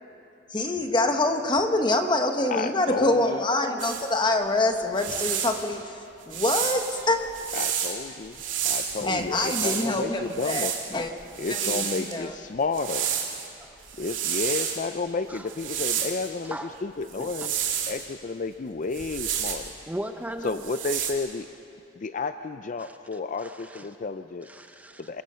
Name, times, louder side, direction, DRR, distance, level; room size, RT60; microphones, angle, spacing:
voice 1, 0.5-6.0 6.3-7.2 9.1-11.1 11.5-12.3, left 2 dB, 25° left, 6 dB, 1.2 m, -25 dB
voice 2, 2.5-3.4 7.5-8.4 8.6-10.7 11.4-13.1 14.0-17.5 17.9-19.7 20.4-21.5 22.0-24.5 25.0-25.2, left 4 dB, 40° left, 10 dB, 0.4 m, -31 dB
sound 1, 3.8-4.1 4.8-5.6 6.3-8.0 8.3-9.9 10.3-12.1 12.7-13.5 13.8-14.8 15.5-16.3 17.1-18.0 18.9-19.7 20.5-21.1, right 9 dB, 80° right, 2.6 m, -30 dB
voice 3, 16.4-16.8 17.2-17.5 19.9-20.6 22.8-23.9 24.4-25.0, right 1 dB, 10° right, 6 dB, 0.7 m, -38 dB
26.5 x 22.0 x 5.6 m, 2.7 s
head